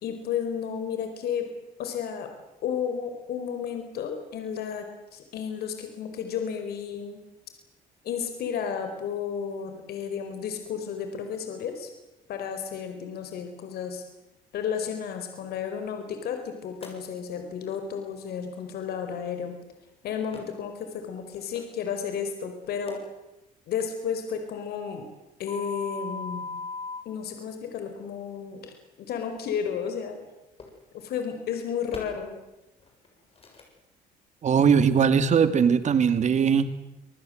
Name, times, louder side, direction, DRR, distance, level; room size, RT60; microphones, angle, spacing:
voice 1, 0.0-1.5 1.8-2.3 2.6-7.2 8.0-11.9 12.3-14.0 14.5-19.6 20.0-23.0 23.7-25.1 25.4-26.6 27.0-30.2 30.9-32.4, left 7 dB, 70° left, 6 dB, 4.9 m, -32 dB
sound 1, 16.8-16.9 19.2-19.3 20.3-20.4 21.2-21.6 22.6-22.9 25.5-27.0 29.4-29.5 30.6-30.8 31.9-32.0 32.8-33.1 33.4-33.6, left 4 dB, 35° left, 7.3 m, -37 dB
voice 2, 34.4-36.8, right 6 dB, 45° right, 12 dB, 2.3 m, -20 dB
26.5 x 20.5 x 7.9 m, 0.94 s
cardioid pair, 110°, 17 cm